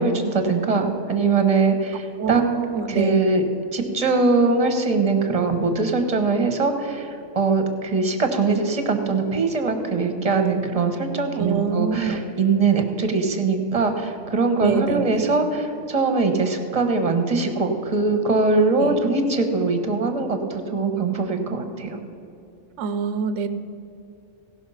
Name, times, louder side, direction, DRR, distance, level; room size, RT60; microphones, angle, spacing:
voice 1, 0.0-2.4 2.9-3.4 3.7-7.1 7.3-22.0, right 3 dB, 30° right, 6 dB, 1.1 m, -22 dB
voice 2, 2.2-3.3 11.4-12.2 14.6-15.4 18.8-19.0 22.8-23.5, right 6 dB, 75° right, 11 dB, 0.9 m, -26 dB
17.0 x 6.0 x 5.6 m, 2.7 s
omnidirectional pair, 1.2 m